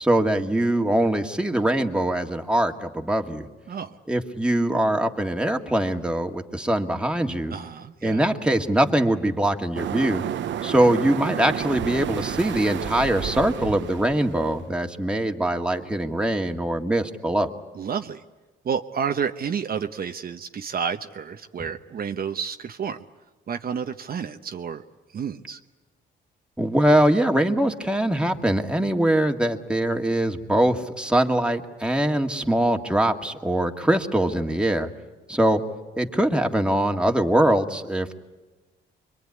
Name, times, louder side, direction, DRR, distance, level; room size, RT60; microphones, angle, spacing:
voice 1, 0.0-3.5 4.1-7.6 8.0-10.2 10.6-17.5 26.6-34.9 35.3-35.6 36.0-38.2, right 1 dB, 5° right, 4 dB, 2.0 m, -22 dB
voice 2, 7.5-8.2 17.8-18.2 18.6-23.0 23.5-24.8 25.1-25.6, right 7 dB, 50° right, 6 dB, 1.0 m, -30 dB
sound 1, 9.8-14.7, right 10 dB, 70° right, 1.0 m, -31 dB
26.0 x 22.5 x 9.7 m, 1.2 s
cardioid pair, 90°, 20 cm